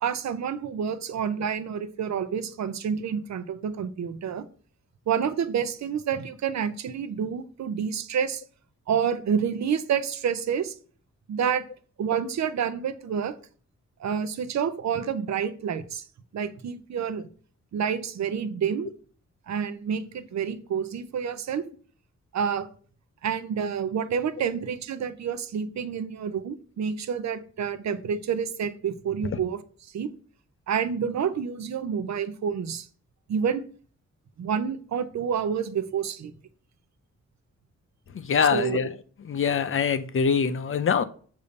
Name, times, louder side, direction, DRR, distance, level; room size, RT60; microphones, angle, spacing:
voice 1, 0.0-4.5 5.1-8.4 8.9-10.7 11.3-11.6 12.0-13.3 14.0-16.0 16.3-17.3 17.7-18.9 19.5-21.7 22.3-22.7 23.2-29.6 29.9-30.1 30.7-32.9 33.3-33.7 34.4-36.3 38.5-38.8, right 7 dB, 65° right, 11 dB, 0.6 m, -28 dB
voice 2, 38.1-38.9 39.2-41.0, left 6 dB, 45° left, 11 dB, 0.5 m, -24 dB
6.8 x 2.7 x 5.1 m, 0.43 s
wide cardioid pair, 170°, 29 cm